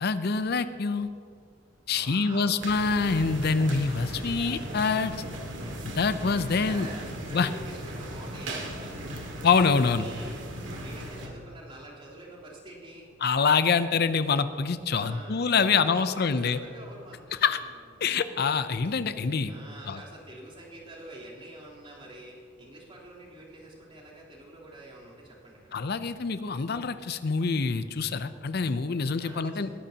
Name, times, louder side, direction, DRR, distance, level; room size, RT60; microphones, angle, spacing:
voice 1, 0.0-1.1 1.9-5.1 5.9-6.9 7.3-7.5 9.4-10.1 13.2-16.6 17.4-17.6 18.0-19.5 19.9-20.0 25.7-29.7, left 5 dB, 55° left, 11 dB, 0.6 m, -25 dB
voice 2, 1.9-2.6 6.6-9.3 9.8-13.1 14.9-17.8 19.5-25.8 29.2-29.7, right 1 dB, 30° right, -6 dB, 3.5 m, -46 dB
sound 1, 2.6-11.3, right 1 dB, 75° right, 2.0 m, -37 dB
21.0 x 13.5 x 2.9 m, 2.2 s
head